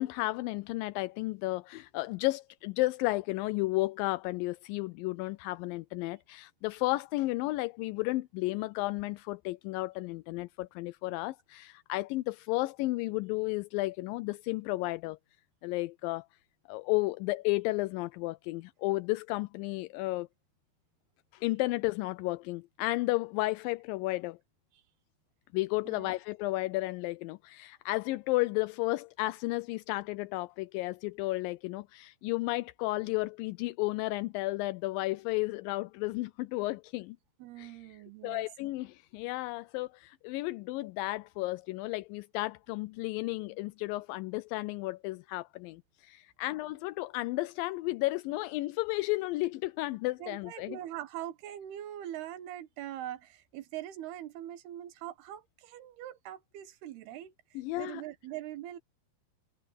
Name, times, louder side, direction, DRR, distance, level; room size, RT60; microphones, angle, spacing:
voice 1, 0.0-15.2 15.6-16.3 16.7-20.3 21.3-24.4 25.5-37.2 37.6-37.7 38.2-50.8 57.6-58.0, left 20 dB, 80° left, 2.1 m, -33 dB
voice 2, 37.4-38.5 50.2-58.8, right 12 dB, 90° right, 3.3 m, -42 dB
omnidirectional pair, 4.4 m